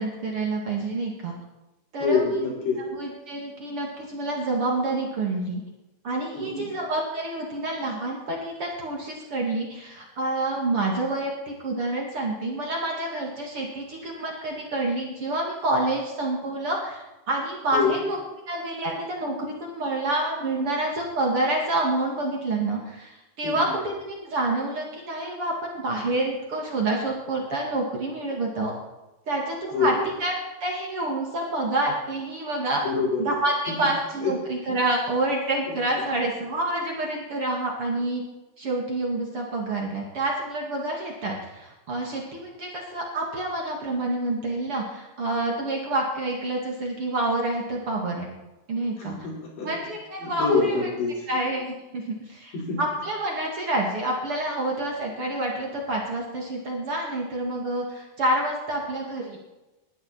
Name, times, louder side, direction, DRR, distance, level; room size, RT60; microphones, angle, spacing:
voice 1, 0.0-1.3 1.9-2.4 2.9-5.6 6.0-17.0 17.3-18.2 18.5-28.7 29.3-29.9 30.2-30.3 30.6-32.8 33.2-38.2 38.6-48.3 48.7-49.1 49.6-50.9 51.3-59.4, right 2 dB, 40° right, -1 dB, 2.6 m, -28 dB
voice 2, 2.0-2.8 6.3-6.7 17.7-18.0 23.4-23.7 29.7-30.0 32.8-33.2 33.7-33.9 34.2-34.3 35.7-35.8 49.0-49.7 50.2-51.3 52.5-52.8, left 4 dB, 90° left, -3 dB, 6.7 m, -26 dB
20.5 x 12.0 x 4.4 m, 1.0 s
omnidirectional pair, 4.7 m